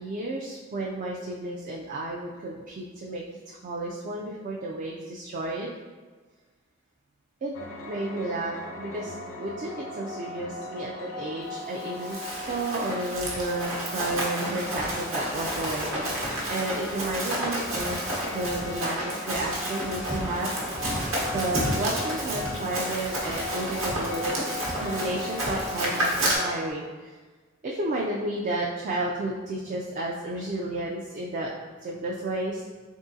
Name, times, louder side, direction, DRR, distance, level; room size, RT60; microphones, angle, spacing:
voice 1, 0.0-5.7 7.4-7.5 7.8-15.9 16.2-18.0 18.3-20.5 21.3-24.4 24.6-27.2 27.6-31.5 31.8-32.6, right 2 dB, 40° right, -2 dB, 0.3 m, -32 dB
sound 1, 7.5-26.7, left 2 dB, 70° left, 0.5 m, -39 dB
Run, 11.8-26.4, right 1 dB, 75° right, 1.0 m, -31 dB
3.6 x 3.6 x 2.7 m, 1.4 s
head